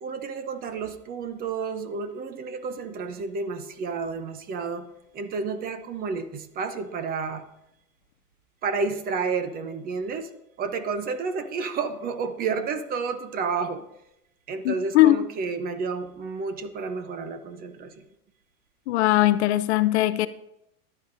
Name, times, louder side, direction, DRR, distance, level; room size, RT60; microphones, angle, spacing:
voice 1, 0.0-4.9 5.1-7.4 8.6-10.3 10.6-13.9 14.5-18.0, right 5 dB, 20° right, 0.6 m, -31 dB
voice 2, 14.6-15.2 18.9-20.3, left 15 dB, 50° left, 0.5 m, -20 dB
14.5 x 11.0 x 2.6 m
hypercardioid pair, 135°, 44 cm